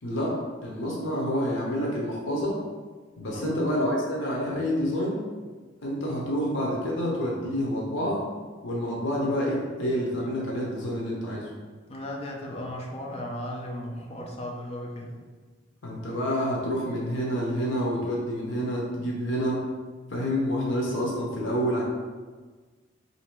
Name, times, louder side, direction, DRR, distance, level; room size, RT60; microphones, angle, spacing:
voice 1, 0.0-2.6 3.2-5.3 5.8-8.2 8.6-11.5 15.8-19.7 20.1-21.8, equal, 75° left, -3 dB, 0.8 m, -28 dB
voice 2, 3.3-3.7 11.9-15.2, left 1 dB, 35° left, -1 dB, 0.6 m, -36 dB
3.2 x 2.8 x 4.5 m, 1.4 s
head